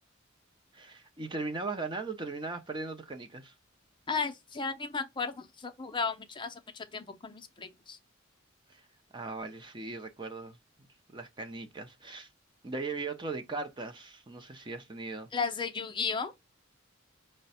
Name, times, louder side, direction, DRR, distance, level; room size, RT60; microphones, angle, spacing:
voice 1, 0.7-3.5 8.7-8.8 9.1-10.6 11.1-12.3 12.6-15.3, right 3 dB, 25° right, 0.6 m, -38 dB
voice 2, 4.1-8.0 15.3-16.3, left 5 dB, 25° left, 0.6 m, -34 dB
5.7 x 2.1 x 4.1 m
head